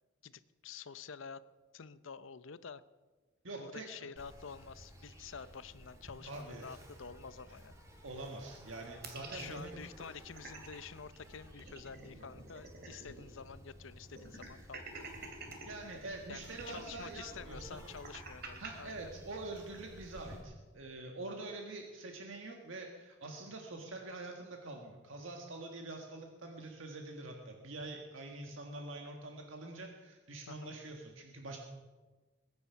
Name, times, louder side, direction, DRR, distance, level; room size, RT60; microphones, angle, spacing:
voice 1, 0.2-1.4 1.7-2.8 3.6-7.7 9.3-15.1 16.3-19.1 30.5-30.8, left 6 dB, 70° left, 15 dB, 0.7 m, -49 dB
voice 2, 3.4-4.1 6.2-6.8 8.0-9.8 15.6-17.8 18.6-31.6, right 2 dB, 75° right, 2 dB, 1.7 m, -45 dB
Insect, 4.2-20.4, equal, 15° right, 2.0 m, -55 dB
sound 1, 9.0-10.8 11.1-11.2 11.5-13.3 13.6-13.7 14.2-15.7 16.4-18.7, right 4 dB, 50° right, 2.6 m, -48 dB
22.0 x 9.8 x 5.8 m, 1.3 s
head